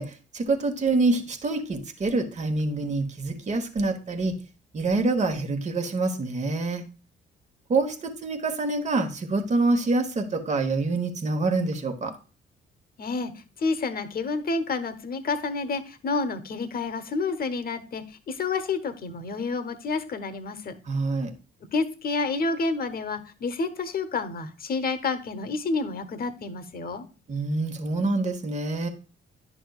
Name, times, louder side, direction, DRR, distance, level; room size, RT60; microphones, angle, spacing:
voice 1, 0.0-4.3 4.7-6.8 7.7-12.1 20.9-21.3 27.3-28.9, right 3 dB, 35° right, 5 dB, 1.2 m, -26 dB
voice 2, 13.0-13.3 13.6-20.8 21.7-27.0, left 4 dB, 50° left, 10 dB, 1.0 m, -29 dB
10.5 x 6.2 x 2.4 m, 0.35 s
cardioid pair, 90°, 20 cm